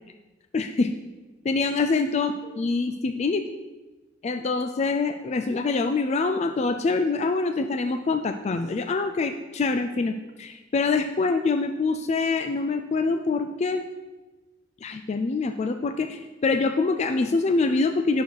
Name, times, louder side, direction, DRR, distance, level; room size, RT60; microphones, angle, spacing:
voice 1, 0.5-0.9 1.4-3.4 4.2-13.8 14.8-18.2, left 3 dB, 35° left, 7 dB, 0.3 m, -25 dB
9.3 x 6.4 x 4.6 m, 1.2 s
head